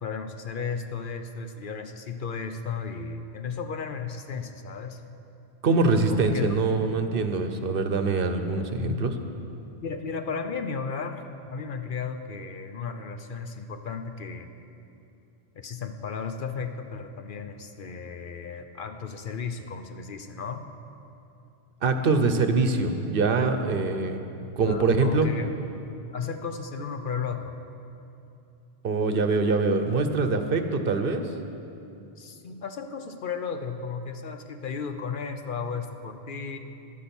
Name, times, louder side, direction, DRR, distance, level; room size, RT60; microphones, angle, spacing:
voice 1, 0.0-5.0 6.1-6.5 8.8-9.1 9.8-14.5 15.6-20.6 24.6-25.5 26.1-27.6 32.2-36.6, left 5 dB, 60° left, 7 dB, 0.8 m, -34 dB
voice 2, 5.6-9.1 21.8-24.2 24.6-25.3 28.8-31.3, right 3 dB, 60° right, 7 dB, 1.0 m, -24 dB
11.5 x 10.0 x 7.0 m, 2.7 s
omnidirectional pair, 1.1 m